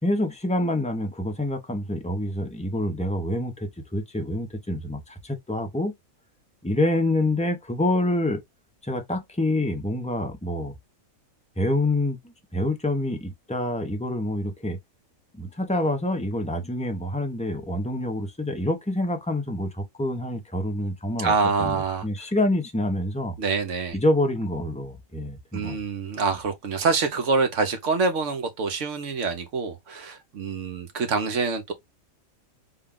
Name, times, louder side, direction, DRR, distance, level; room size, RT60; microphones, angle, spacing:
voice 1, 0.0-5.9 6.6-8.4 8.8-10.7 11.6-14.8 15.3-21.3 21.6-23.4 23.9-25.8, left 1 dB, 10° left, 0.3 m, -27 dB
voice 2, 21.2-22.1 23.4-24.0 25.5-31.7, right 4 dB, 65° right, 1.1 m, -26 dB
3.8 x 2.3 x 3.6 m
omnidirectional pair, 1.5 m